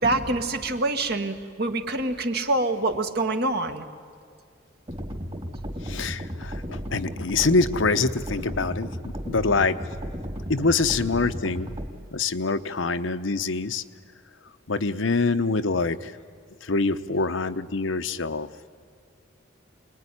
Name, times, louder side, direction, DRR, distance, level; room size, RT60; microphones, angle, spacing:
voice 1, 0.0-3.9, right 2 dB, 55° right, 6 dB, 1.8 m, -25 dB
sound 1, 4.9-11.9, equal, 30° right, 2.6 m, -34 dB
voice 2, 5.8-9.8 10.5-11.7 12.1-13.8 14.7-16.2 16.6-18.5, left 3 dB, 85° left, 9 dB, 1.0 m, -25 dB
26.5 x 20.5 x 10.0 m, 2.2 s
head